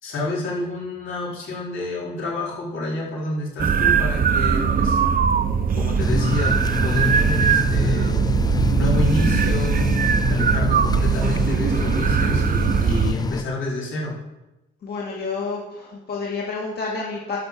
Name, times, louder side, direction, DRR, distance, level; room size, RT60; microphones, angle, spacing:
voice 1, 0.0-5.0 5.7-8.2 8.7-9.9 10.3-14.2, left 2 dB, 80° left, -4 dB, 4.5 m, -29 dB
sound 1, 3.6-13.1, right 6 dB, 45° right, 0.9 m, -20 dB
sound 2, 6.0-13.4, left 4 dB, 20° left, 0.4 m, -26 dB
voice 2, 14.8-17.4, left 4 dB, 55° left, -4 dB, 2.6 m, -29 dB
11.5 x 6.0 x 7.1 m, 1.0 s
cardioid pair, 90°, 20 cm